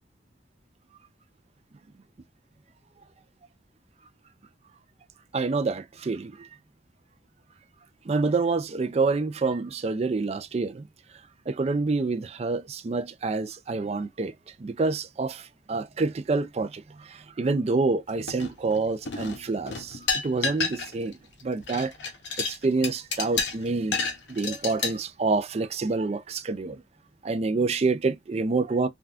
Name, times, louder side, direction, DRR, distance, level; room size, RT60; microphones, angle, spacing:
voice 1, 5.3-6.5 8.1-10.8 11.5-14.3 14.6-21.2 21.4-21.9 22.4-24.0 24.3-26.8 27.2-28.9, right 3 dB, 35° right, 0.4 m, -27 dB
sound 1, 18.3-18.8 19.0-21.1 21.4-24.9, left 5 dB, 85° left, 0.8 m, -30 dB
3.5 x 2.2 x 2.4 m
head